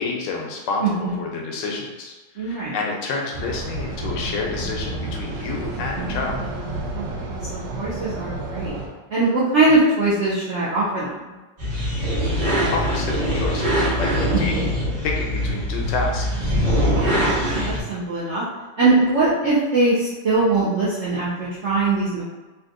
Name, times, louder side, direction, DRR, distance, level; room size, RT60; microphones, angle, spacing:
voice 1, 0.0-6.4 12.7-14.1 14.4-14.5 15.0-16.2, left 3 dB, 85° left, 0 dB, 1.3 m, -29 dB
voice 2, 0.8-1.2 2.4-2.8 5.9-6.4 6.9-8.8 9.1-11.4 14.5-14.7 16.9-18.4 18.8-22.2, right 3 dB, 65° right, -9 dB, 0.7 m, -22 dB
sound 1, 3.3-8.9, right 2 dB, 85° right, 1.3 m, -30 dB
sound 2, 11.6-17.8, equal, 35° right, 0.8 m, -22 dB
3.3 x 2.7 x 2.5 m, 1.1 s
omnidirectional pair, 1.9 m